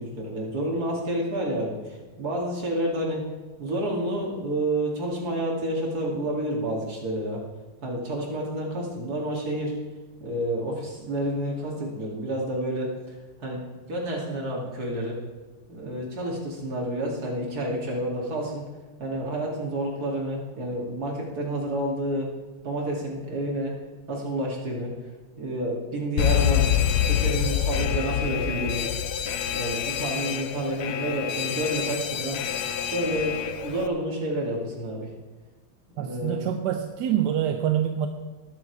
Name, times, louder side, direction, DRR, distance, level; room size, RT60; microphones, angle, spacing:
voice 1, 0.0-3.2 3.6-7.4 7.8-9.7 10.2-15.2 15.7-18.6 19.0-22.3 22.6-23.7 24.1-24.9 25.4-26.7 27.0-28.9 29.5-32.6 32.9-35.1 36.0-36.4, right 1 dB, 50° right, -2 dB, 2.9 m, -29 dB
Alarm, 26.2-33.9, left 10 dB, 65° left, 1.1 m, -26 dB
voice 2, 36.0-38.1, right 10 dB, 65° right, 5 dB, 1.2 m, -26 dB
19.5 x 7.5 x 4.7 m, 1.2 s
omnidirectional pair, 2.1 m